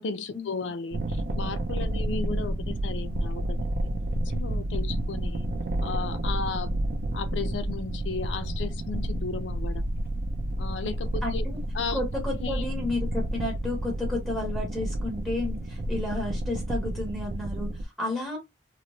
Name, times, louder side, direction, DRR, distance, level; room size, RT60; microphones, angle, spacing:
voice 1, 0.0-3.6 4.3-5.5 5.8-6.8 7.1-9.9 10.6-11.4 11.7-12.0 12.4-12.6, left 4 dB, 90° left, 0.4 m, -35 dB
sound 1, 0.9-17.9, right 1 dB, 55° right, 0.4 m, -30 dB
voice 2, 11.2-11.6 11.9-18.4, left 2 dB, ahead, 1.0 m, -32 dB
3.0 x 2.0 x 2.6 m
head